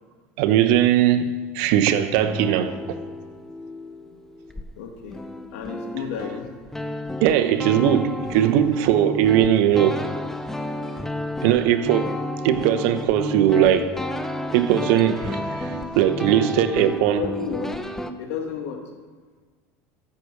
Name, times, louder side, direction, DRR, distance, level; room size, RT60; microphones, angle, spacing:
voice 1, 0.4-2.8 7.2-10.0 11.4-12.2 12.4-13.9 14.5-17.2, right 10 dB, 70° right, 0.9 m, -19 dB
sound 1, 2.2-4.7 5.0-18.1, left 1 dB, 5° left, 0.7 m, -32 dB
voice 2, 4.8-5.2 5.5-6.6 10.9-11.1 16.7-16.9 17.2-17.7 18.2-18.8, left 6 dB, 80° left, 1.6 m, -32 dB
15.0 x 6.7 x 4.8 m
supercardioid pair, 105°, 7 cm